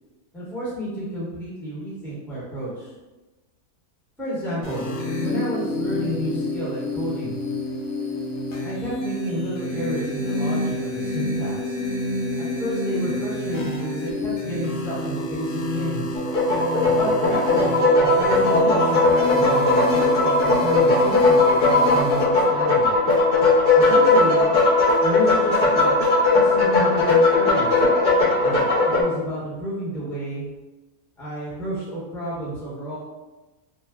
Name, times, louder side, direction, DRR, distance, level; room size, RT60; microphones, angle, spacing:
voice 1, 0.3-2.9 4.2-4.9 5.2-7.3 8.6-11.8 12.4-16.1 16.8-22.9 23.7-24.4 25.0-25.9 26.3-27.8 28.4-30.4 31.2-33.0, right 1 dB, ahead, -9 dB, 0.9 m, -31 dB
sound 1, 4.6-22.2, left 1 dB, 90° left, 0.4 m, -28 dB
sound 2, 16.1-29.0, left 2 dB, 50° left, 0.7 m, -18 dB
3.0 x 2.1 x 3.5 m, 1.1 s
omnidirectional pair, 1.7 m